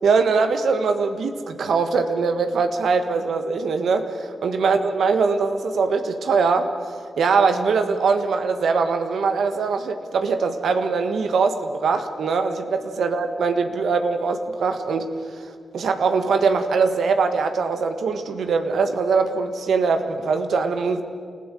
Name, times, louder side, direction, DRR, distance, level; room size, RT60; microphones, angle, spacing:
voice 1, 0.0-15.4 15.7-21.0, right 4 dB, 80° right, 8 dB, 1.5 m, -22 dB
29.5 x 15.0 x 7.7 m, 2.3 s
cardioid pair, 60°, 0 cm